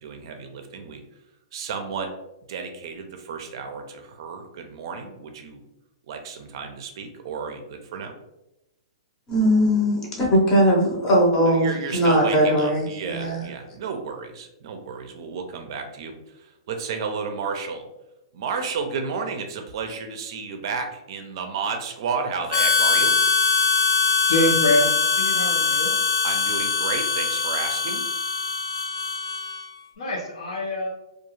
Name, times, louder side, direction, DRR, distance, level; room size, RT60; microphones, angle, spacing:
voice 1, 0.0-1.0 1.5-2.1 2.5-5.6 6.1-8.1 11.5-16.2 16.4-17.9 18.3-23.2 26.2-28.0, right 5 dB, 50° right, 5 dB, 0.4 m, -32 dB
voice 2, 9.3-11.7 11.9-13.5, equal, 20° left, -2 dB, 0.7 m, -20 dB
Harmonica, 22.5-29.8, left 4 dB, 45° left, 0.3 m, -22 dB
voice 3, 24.3-25.9 30.0-30.9, left 1 dB, 80° left, -3 dB, 0.7 m, -25 dB
2.3 x 2.3 x 3.0 m, 0.91 s
hypercardioid pair, 150°, 3 cm